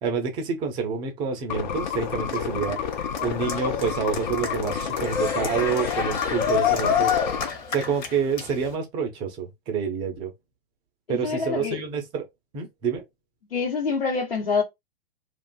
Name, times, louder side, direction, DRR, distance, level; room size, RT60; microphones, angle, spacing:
voice 1, 0.0-2.8 3.2-7.2 7.7-10.3 11.1-12.2 12.5-13.0, right 6 dB, 15° right, 0.4 m, -28 dB
sound 1, 1.5-7.5, left 7 dB, 50° left, 0.4 m, -30 dB
Cheering, 1.7-8.7, left 7 dB, 30° left, 0.8 m, -28 dB
voice 2, 11.1-11.8 13.5-14.6, left 5 dB, 75° left, 1.0 m, -26 dB
2.4 x 2.2 x 2.4 m
figure-of-eight pair, 110°, 30 cm